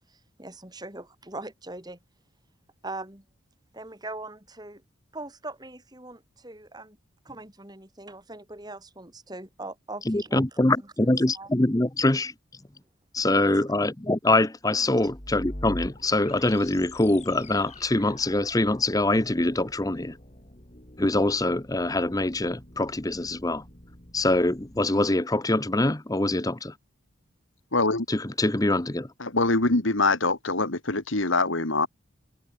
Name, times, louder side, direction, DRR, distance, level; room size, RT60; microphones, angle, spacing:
voice 1, 0.1-2.0 2.8-3.2 3.7-4.8 5.1-7.0 7.3-10.7 11.0-11.5 13.5-13.6, right 2 dB, 20° right, 3.3 m, -41 dB
voice 2, 10.1-12.3 13.1-20.2 21.0-23.6 24.1-26.7 28.1-29.1, left 2 dB, 15° left, 0.9 m, -24 dB
sound 1, 14.9-24.9, left 1 dB, 30° left, 3.8 m, -44 dB
voice 3, 27.7-28.1 29.2-31.9, left 3 dB, 70° left, 2.5 m, -24 dB
head